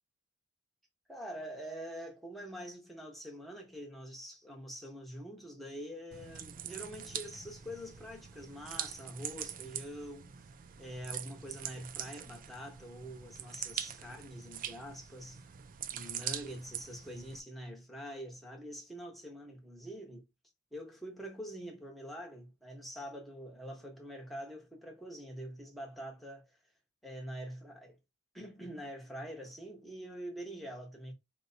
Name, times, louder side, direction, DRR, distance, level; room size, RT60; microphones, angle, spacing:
voice 1, 1.1-10.3 10.8-15.4 15.9-20.3 20.7-26.6 27.0-28.0 28.3-31.1, equal, ahead, 1.0 m, -45 dB
sound 1, 6.1-17.4, right 10 dB, 40° right, 0.4 m, -43 dB
4.3 x 2.2 x 3.8 m
head